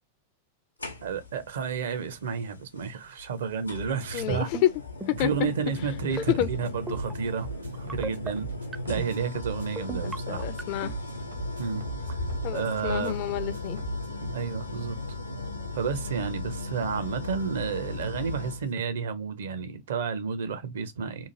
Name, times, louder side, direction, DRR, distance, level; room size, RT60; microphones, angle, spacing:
sound 1, 0.8-1.4 2.8-2.9 3.7-18.7, left 2 dB, 85° left, 0.7 m, -36 dB
voice 1, 1.0-4.5 5.2-7.5 7.8-8.5 8.9-10.5 11.6-12.2 12.5-13.2 14.3-15.0 15.7-21.3, right 6 dB, 60° right, 0.6 m, -31 dB
voice 2, 4.1-4.7 5.1-5.5 6.4-6.5 10.0-10.9 12.4-13.8, left 12 dB, 45° left, 0.4 m, -29 dB
sound 2, 4.2-4.7 5.0-5.3 6.0-6.5 6.9-7.1 7.9-8.3 8.7-9.1 9.8-10.2 10.6-10.9, right 4 dB, 15° right, 0.4 m, -35 dB
sound 3, 6.4-14.2, right 5 dB, 75° right, 1.1 m, -41 dB
2.8 x 2.4 x 2.7 m
figure-of-eight pair, 90°, 0 cm